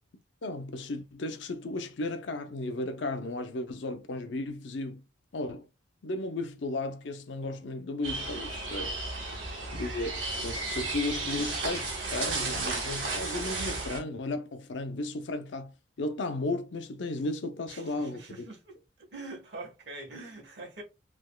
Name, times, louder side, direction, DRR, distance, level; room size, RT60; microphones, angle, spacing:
voice 1, 0.4-5.0 5.3-5.7 6.0-9.0 9.7-15.7 16.0-18.2, left 2 dB, 70° left, 0.6 m, -34 dB
sound 1, 8.0-14.0, right 3 dB, 80° right, 1.4 m, -33 dB
voice 2, 9.3-9.8 17.7-18.8 19.1-20.8, right 2 dB, 65° right, 1.3 m, -44 dB
3.4 x 2.9 x 2.2 m
head